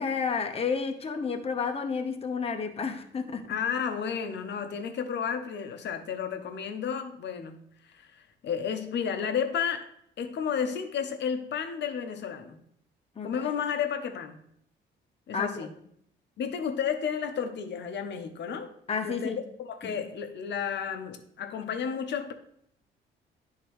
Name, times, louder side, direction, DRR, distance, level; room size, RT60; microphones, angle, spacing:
voice 1, 0.0-3.6 13.2-13.5 15.3-15.7 18.9-19.4, left 5 dB, 30° left, 5 dB, 0.8 m, -31 dB
voice 2, 3.5-9.9 10.2-12.6 13.2-14.4 15.3-15.7 16.4-18.7 19.0-22.3, left 7 dB, 65° left, 7 dB, 0.8 m, -32 dB
10.5 x 3.7 x 3.1 m, 0.69 s
cardioid pair, 90°, 20 cm